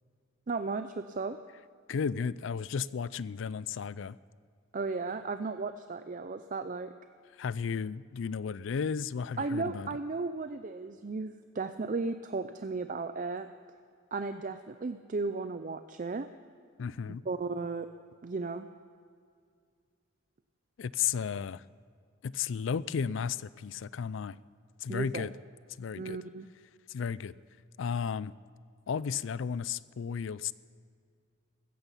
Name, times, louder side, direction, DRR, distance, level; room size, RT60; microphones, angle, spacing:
voice 1, 0.5-1.4 4.7-6.9 9.4-13.5 14.1-16.3 17.1-17.9 18.2-18.7 24.9-25.3 26.0-26.5, right 3 dB, 45° right, 9 dB, 0.5 m, -35 dB
voice 2, 1.9-4.2 7.4-9.9 16.8-17.2 20.8-21.6 22.2-24.4 24.8-25.3 25.8-26.2 26.9-27.3 27.8-28.3 28.9-30.5, left 6 dB, 75° left, 19 dB, 0.4 m, -34 dB
15.5 x 14.0 x 5.6 m, 2.2 s
head